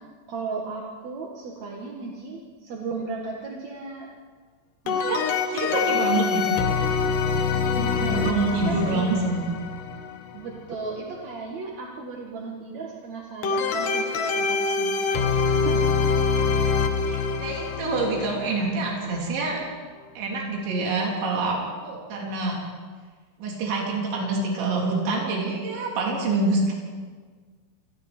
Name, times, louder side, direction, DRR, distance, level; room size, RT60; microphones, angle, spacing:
voice 1, 0.3-4.1 5.6-6.1 7.7-9.1 10.3-16.1, right 4 dB, 55° right, -1 dB, 2.2 m, -35 dB
sound 1, 4.9-10.4 13.4-19.5, left 5 dB, 65° left, 2.2 m, -25 dB
voice 2, 4.9-6.6 8.0-9.4 17.1-19.6 20.2-22.6 23.4-26.7, right 3 dB, 70° right, -2 dB, 5.8 m, -26 dB
28.0 x 21.0 x 4.4 m, 1.5 s
omnidirectional pair, 5.4 m